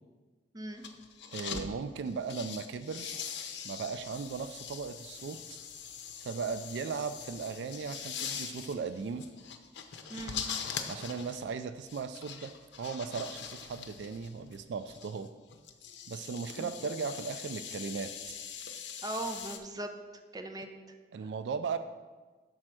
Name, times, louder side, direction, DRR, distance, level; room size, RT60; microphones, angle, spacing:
sound 1, 0.7-1.7 2.1-19.6, left 7 dB, 75° left, 0.6 m, -42 dB
voice 1, 1.3-3.2 3.6-5.6 6.2-9.2 10.9-12.5 12.8-15.3 16.1-18.3 21.1-21.8, right 5 dB, 70° right, 10 dB, 0.3 m, -37 dB
voice 2, 19.0-19.9 20.3-20.7 21.1-21.3, right 2 dB, 20° right, 5 dB, 0.5 m, -39 dB
6.2 x 4.4 x 6.2 m, 1.3 s
head